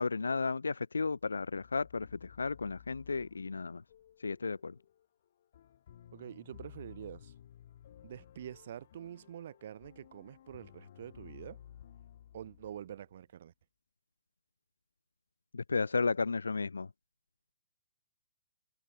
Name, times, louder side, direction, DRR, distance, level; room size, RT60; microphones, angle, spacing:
voice 1, 0.0-3.8 4.2-4.7 15.5-16.9, left 4 dB, 80° left, 0.4 m, -33 dB
sound 1, 1.2-13.2, left 10 dB, 55° left, 3.0 m, -56 dB
voice 2, 6.1-7.3 8.0-11.6 12.3-13.5, right 10 dB, 55° right, 0.6 m, -46 dB
figure-of-eight pair, 135°, 0 cm